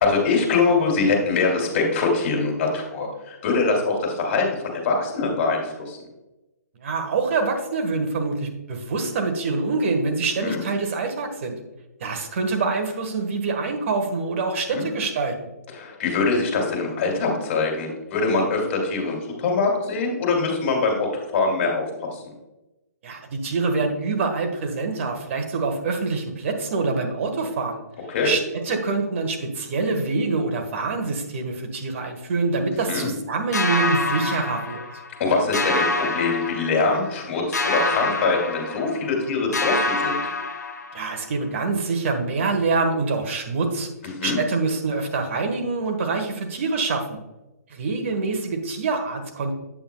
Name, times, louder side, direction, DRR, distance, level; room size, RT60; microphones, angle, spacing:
voice 1, 0.0-4.5 4.7-6.0 10.4-10.6 14.7-14.9 15.7-22.2 28.1-28.3 32.9-33.1 35.2-40.2 44.0-44.4, left 4 dB, 45° left, 1 dB, 2.5 m, -23 dB
voice 2, 6.8-11.6 12.0-15.5 23.0-27.8 28.2-34.8 40.9-43.9 44.2-47.2 47.7-49.5, right 3 dB, 50° right, 4 dB, 1.4 m, -25 dB
sound 1, 33.5-35.2 35.5-37.2 37.5-39.2 39.5-41.2, left 2 dB, 90° left, 1.0 m, -26 dB
8.6 x 7.1 x 2.3 m, 1.0 s
hypercardioid pair, 140°, 9 cm